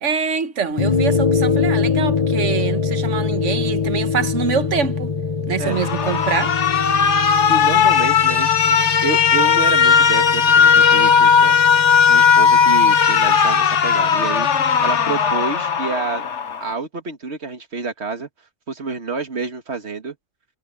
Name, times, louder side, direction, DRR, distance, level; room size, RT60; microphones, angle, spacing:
voice 1, 0.0-5.1 5.5-6.5, right 6 dB, 85° right, 1.5 m, -24 dB
sound 1, 0.8-15.3, left 5 dB, 25° left, 1.2 m, -24 dB
Alarm, 5.7-16.7, left 6 dB, 75° left, 1.4 m, -16 dB
voice 2, 7.5-11.6 12.1-14.5 14.8-16.3 16.6-18.3 18.7-20.2, right 4 dB, 65° right, 2.3 m, -28 dB
omnidirectional pair, 1.2 m